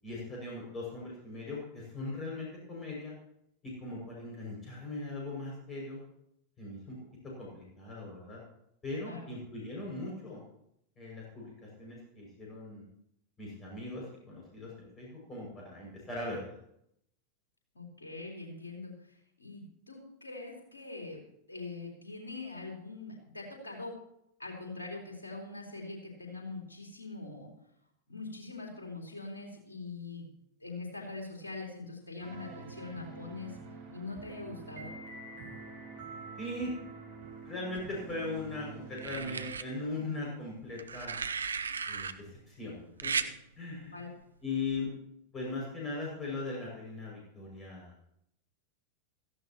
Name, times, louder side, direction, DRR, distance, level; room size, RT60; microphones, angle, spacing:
voice 1, 0.0-3.1 3.6-6.0 6.6-7.0 7.4-8.4 8.8-10.4 11.0-12.8 13.4-16.6 36.4-36.7 37.4-41.2 41.9-43.3 43.6-44.0 44.4-44.9 45.3-47.9, left 2 dB, 20° left, -3 dB, 6.4 m, -39 dB
voice 2, 17.7-24.0 24.4-27.5 28.1-30.3 30.6-33.6 33.9-34.9 43.9-44.1, left 3 dB, 75° left, -1 dB, 4.2 m, -43 dB
sound 1, 32.2-39.4, right 3 dB, 50° right, 6.1 m, -46 dB
sound 2, 37.7-38.4 39.0-39.6 40.8-42.1 43.0-43.3 44.7-44.9, right 5 dB, 70° right, 0.6 m, -35 dB
17.0 x 14.5 x 3.0 m, 0.76 s
figure-of-eight pair, 90°, 0 cm